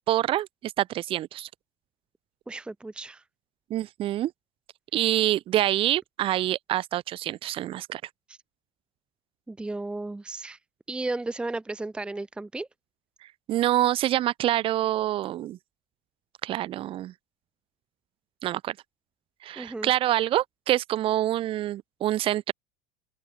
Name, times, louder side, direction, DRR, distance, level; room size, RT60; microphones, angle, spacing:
voice 1, 0.1-1.5 3.7-4.3 4.9-8.0 13.5-15.6 16.4-17.1 18.4-18.8 19.4-22.5, right 13 dB, 40° right, 2.4 m, -26 dB
voice 2, 2.5-3.2 8.3-8.4 9.5-10.6 10.9-12.7 19.6-19.9, right 2 dB, 5° right, 0.9 m, -34 dB
open air
supercardioid pair, 140°, 14 cm